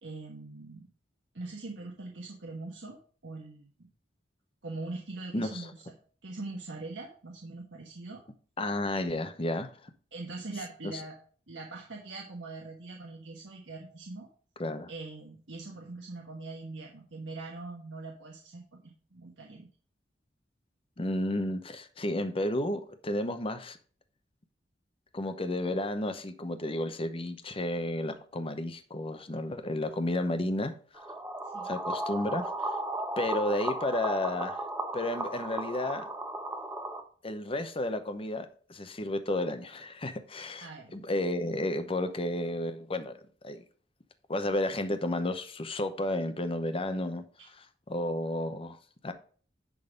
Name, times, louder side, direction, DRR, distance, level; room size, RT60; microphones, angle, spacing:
voice 1, 0.0-0.9 1.3-3.0 3.2-3.7 4.6-5.7 6.2-8.2 10.1-11.1 11.5-14.3 14.9-19.7 31.5-31.7 40.6-40.9 47.4-47.5, right 3 dB, 85° right, 1.3 m, -42 dB
voice 2, 5.3-5.7 8.6-9.7 10.9-11.0 14.6-14.9 21.0-23.8 25.1-30.7 31.6-32.7 33.2-34.6 34.9-36.1 37.2-43.6 44.3-47.2 47.9-49.1, left 1 dB, 30° left, 0.8 m, -32 dB
sound 1, 31.0-37.0, right 1 dB, 15° right, 1.0 m, -35 dB
10.5 x 3.9 x 5.1 m
head